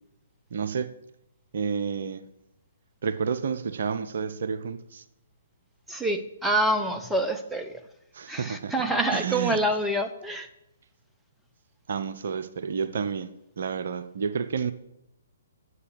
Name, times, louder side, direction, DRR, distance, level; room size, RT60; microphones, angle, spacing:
voice 1, 0.5-0.9 1.5-2.2 3.0-5.0 8.1-8.7 9.1-9.6 11.9-13.3 13.6-14.7, right 6 dB, 55° right, 0.7 m, -30 dB
voice 2, 5.9-7.7 8.3-10.5, right 1 dB, 5° right, 0.9 m, -26 dB
9.6 x 8.0 x 7.8 m
figure-of-eight pair, 125°, 0 cm